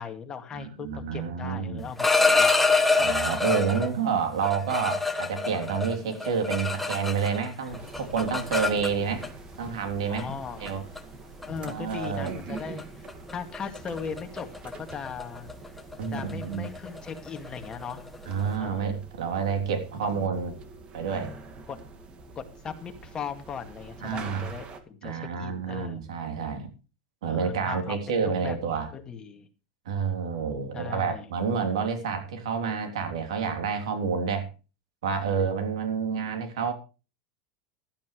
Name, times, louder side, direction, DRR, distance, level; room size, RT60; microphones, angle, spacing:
voice 1, 0.0-2.5 10.1-10.7 11.5-12.9 13.3-15.5 16.1-18.0 18.6-18.9 20.0-20.3 21.7-21.8 22.4-26.0 27.3-29.5 30.7-31.3, left 6 dB, 25° left, 6 dB, 2.2 m, -38 dB
voice 2, 0.5-1.9 3.0-9.2 9.6-10.3 10.6-10.8 11.6-12.4 16.0-16.7 18.3-20.5 20.9-21.3 24.0-24.4 25.0-26.7 27.2-28.9 29.9-34.5 35.0-36.7, right 6 dB, 90° right, 5 dB, 3.5 m, -29 dB
sound 1, 1.8-3.9 4.4-7.5 7.7-9.3 10.2-10.3 10.7-11.0 11.4-11.7 12.0-12.3 12.6-12.8 13.1-18.5, left 3 dB, 5° left, 1.4 m, -26 dB
sound 2, 7.7-24.8, right 4 dB, 35° right, 2.2 m, -45 dB
15.5 x 12.5 x 3.3 m, 0.32 s
supercardioid pair, 125°, 3 cm